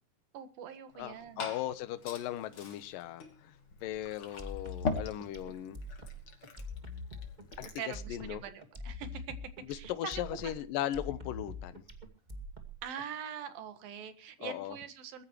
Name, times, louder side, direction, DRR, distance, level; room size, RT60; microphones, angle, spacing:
voice 1, 0.3-1.5 7.8-9.4 9.7-10.5 12.8-15.2, right 8 dB, 80° right, 3.4 m, -43 dB
Glass / Fill (with liquid), 0.9-8.0, left 4 dB, 40° left, 3.2 m, -42 dB
voice 2, 1.0-3.2 3.8-5.8 7.6-8.4 9.7-11.8 14.4-14.8, left 13 dB, 80° left, 2.6 m, -37 dB
sound 1, 4.4-13.0, left 2 dB, 20° right, 1.5 m, -44 dB
22.0 x 13.5 x 3.1 m
omnidirectional pair, 4.1 m